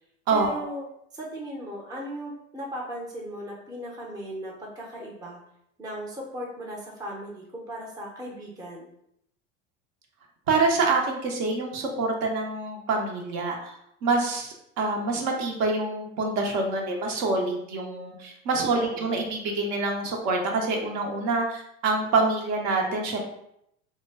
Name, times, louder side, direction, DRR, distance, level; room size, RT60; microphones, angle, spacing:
voice 1, 0.3-0.8 1.1-5.4 5.8-8.9 18.7-19.2, equal, 10° right, -2 dB, 0.6 m, -37 dB
voice 2, 10.5-13.7 14.0-23.2, right 3 dB, 50° right, 1 dB, 0.7 m, -26 dB
2.2 x 2.1 x 3.3 m, 0.75 s
hypercardioid pair, 90°, 38 cm